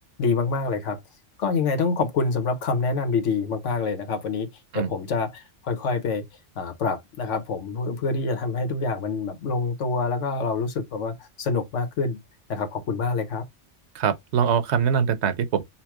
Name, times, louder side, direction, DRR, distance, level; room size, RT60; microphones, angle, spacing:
voice 1, 0.2-1.0 1.4-4.5 4.7-6.2 6.5-12.2 12.5-13.4, left 4 dB, 85° left, 1.3 m, -26 dB
voice 2, 13.9-15.6, right 7 dB, 70° right, 1.0 m, -23 dB
5.7 x 2.1 x 4.5 m
omnidirectional pair, 1.2 m